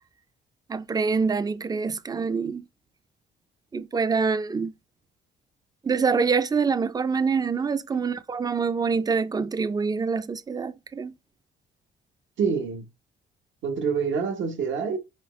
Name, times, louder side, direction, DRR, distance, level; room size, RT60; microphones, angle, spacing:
voice 1, 0.7-2.6 3.7-4.7 5.8-11.1, right 5 dB, 20° right, 0.4 m, -25 dB
voice 2, 12.4-12.9 13.6-15.0, right 6 dB, 70° right, 1.0 m, -26 dB
4.6 x 3.0 x 3.0 m
cardioid pair, 90°, 20 cm